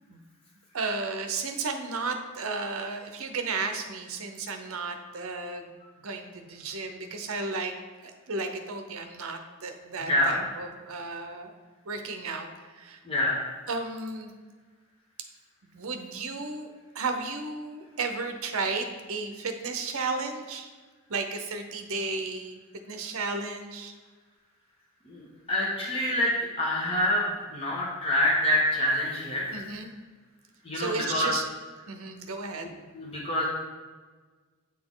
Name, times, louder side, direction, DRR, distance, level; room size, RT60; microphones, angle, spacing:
voice 1, 0.7-5.7 6.0-7.7 8.0-11.5 11.8-13.0 13.7-14.3 15.7-16.7 16.9-20.7 21.1-22.6 22.9-23.9 29.5-29.9 30.7-31.5 31.9-32.7, right 3 dB, 70° right, 6 dB, 0.7 m, -33 dB
voice 2, 10.0-10.4 13.0-13.4 25.0-29.6 30.6-31.3 32.9-33.5, left 1 dB, 25° left, -6 dB, 1.3 m, -26 dB
8.7 x 4.2 x 3.8 m, 1.4 s
head